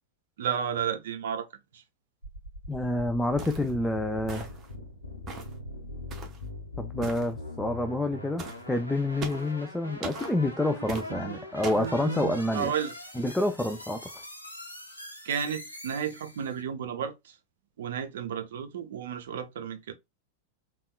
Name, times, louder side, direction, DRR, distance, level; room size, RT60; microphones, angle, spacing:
voice 1, 0.4-1.8 11.1-12.9 15.2-17.4 17.8-19.9, right 8 dB, 60° right, 0.5 m, -33 dB
sound 1, 2.2-16.6, left 2 dB, 85° left, 0.7 m, -42 dB
voice 2, 2.7-4.5 6.8-12.7 13.2-14.1, left 1 dB, 5° left, 0.3 m, -28 dB
sound 2, 3.4-3.7 4.3-4.7 5.3-5.6 6.1-6.4 7.0-7.3 8.4-8.6 9.2-9.5 10.0-10.3 10.9-11.1 11.6-11.9, right 3 dB, 25° right, 0.7 m, -38 dB
3.5 x 2.2 x 2.2 m
figure-of-eight pair, 90°, 0 cm